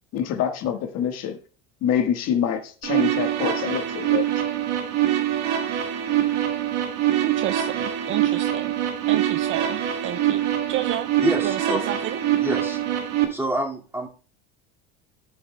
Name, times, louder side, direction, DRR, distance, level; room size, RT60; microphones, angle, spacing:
voice 1, 0.1-1.4 1.8-4.2, left 9 dB, 55° left, 1.5 m, -25 dB
sound 1, 2.8-13.2, right 11 dB, 65° right, 2.0 m, -24 dB
voice 2, 7.2-10.4 10.7-11.1 11.4-12.2, right 13 dB, 40° right, 0.4 m, -30 dB
voice 3, 11.2-11.8 12.4-12.8 13.3-14.1, right 1 dB, 10° right, 2.1 m, -26 dB
15.5 x 5.7 x 2.2 m
supercardioid pair, 105°, 31 cm